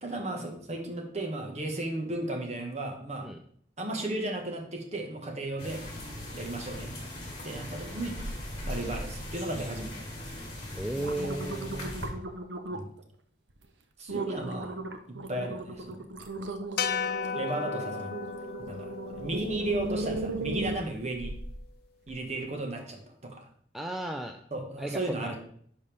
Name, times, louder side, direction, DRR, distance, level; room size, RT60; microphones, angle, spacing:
voice 1, 0.0-3.3 3.8-5.8 6.3-6.9 7.4-8.2 8.7-10.1 12.7-12.9 14.0-14.7 15.1-16.0 17.3-18.1 18.7-21.3 22.1-23.4 24.5-25.4, right 2 dB, 40° right, 3 dB, 1.4 m, -34 dB
sound 1, 5.6-12.1, left 1 dB, 35° left, 3.8 m, -40 dB
sound 2, 8.1-8.8 9.2-9.7 10.2-10.4 10.8-13.0 13.5-13.7 14.1-21.6 22.1-22.2, right 2 dB, 85° right, 0.8 m, -37 dB
voice 2, 10.7-11.9 23.7-24.4 24.8-25.3, right 1 dB, ahead, 4 dB, 0.4 m, -35 dB
sound 3, 16.8-21.1, left 7 dB, 55° left, 0.4 m, -36 dB
10.5 x 5.5 x 3.4 m, 0.62 s
head